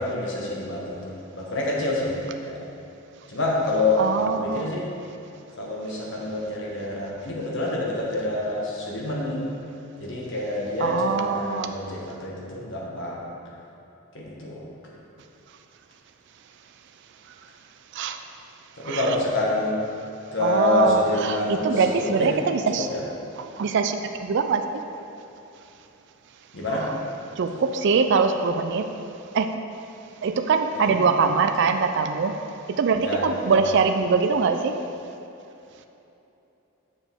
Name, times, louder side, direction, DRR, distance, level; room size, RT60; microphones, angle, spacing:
voice 1, 0.0-2.6 3.3-4.9 5.6-9.4 10.0-13.2 14.1-14.6 18.7-19.8 20.3-22.3 22.7-23.0 26.5-26.8 30.7-31.0 33.0-33.7, left 2 dB, 65° left, -4 dB, 1.4 m, -27 dB
voice 2, 4.0-4.7 10.8-11.7 17.9-18.2 18.8-19.0 20.4-22.9 23.6-24.0 24.2-24.6 27.4-28.9 29.3-29.5 30.2-32.4 32.7-34.8, right 5 dB, 60° right, 7 dB, 0.4 m, -22 dB
7.0 x 6.5 x 3.6 m, 2.9 s
head